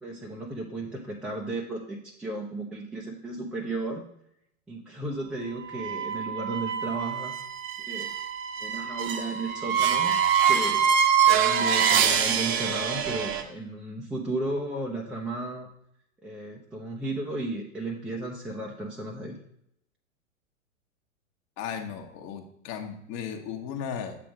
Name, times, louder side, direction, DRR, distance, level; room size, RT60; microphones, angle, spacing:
voice 1, 0.0-4.1 4.7-7.4 7.9-8.1 8.6-15.7 16.2-19.4, right 2 dB, ahead, -4 dB, 0.4 m, -34 dB
sound 1, 5.7-13.4, right 7 dB, 30° right, 0.7 m, -25 dB
voice 2, 21.6-24.2, left 7 dB, 40° left, 5 dB, 1.1 m, -36 dB
7.4 x 3.6 x 6.1 m, 0.74 s
figure-of-eight pair, 100°, 40 cm